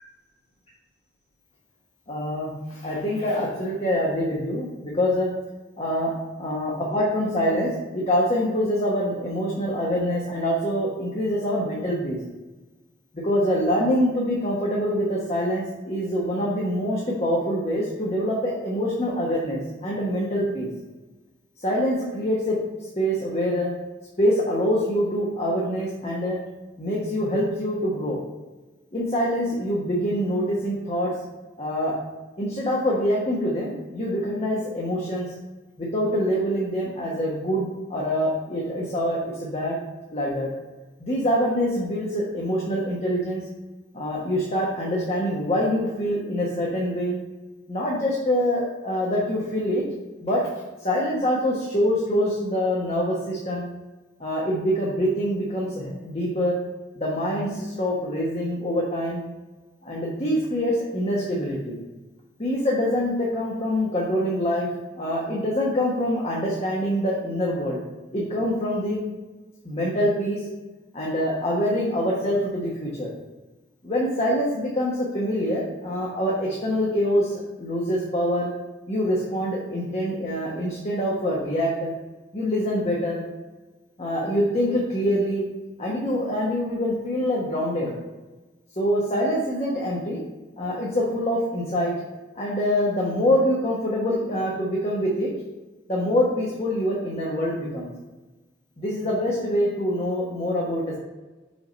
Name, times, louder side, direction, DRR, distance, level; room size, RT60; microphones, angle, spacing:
voice 1, 2.1-5.3 5.8-6.1 6.4-12.2 13.1-20.7 21.6-22.5 22.8-23.7 24.2-26.4 26.8-28.2 28.9-31.1 31.6-31.9 32.4-35.3 35.8-39.8 40.1-40.5 41.0-43.4 43.9-47.2 47.7-49.8 50.2-50.4 50.8-53.7 54.2-56.6 56.9-59.2 59.8-61.8 62.4-64.7 65.0-67.8 68.1-69.0 69.6-70.4 70.9-73.1 73.8-78.5 78.9-81.9 82.3-83.2 84.0-85.4 85.8-88.0 88.8-90.2 90.6-91.9 92.4-95.3 95.9-97.9 98.8-101.0, equal, 35° left, -4 dB, 1.2 m, -25 dB
5.3 x 4.6 x 5.2 m, 1.2 s
head